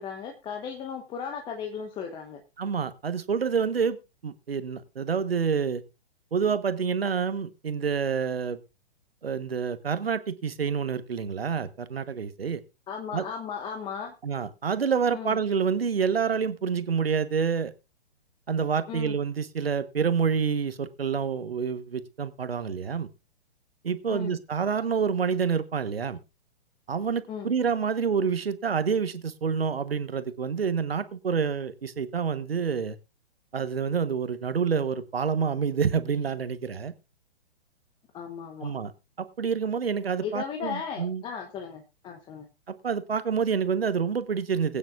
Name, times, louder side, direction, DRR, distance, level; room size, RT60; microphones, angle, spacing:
voice 1, 0.0-2.4 12.9-14.1 15.1-15.4 18.9-19.2 24.1-24.3 27.3-27.5 38.1-38.7 40.2-42.5, left 7 dB, 15° left, 4 dB, 1.1 m, -36 dB
voice 2, 2.6-4.0 4.2-5.8 6.3-8.6 9.2-12.6 13.1-13.2 14.2-17.7 18.5-23.1 23.8-26.2 26.9-33.0 33.5-36.9 38.6-38.9 39.2-41.2 42.8-44.8, right 6 dB, 70° right, 13 dB, 1.2 m, -27 dB
21.0 x 9.2 x 2.5 m, 0.28 s
figure-of-eight pair, 120°, 31 cm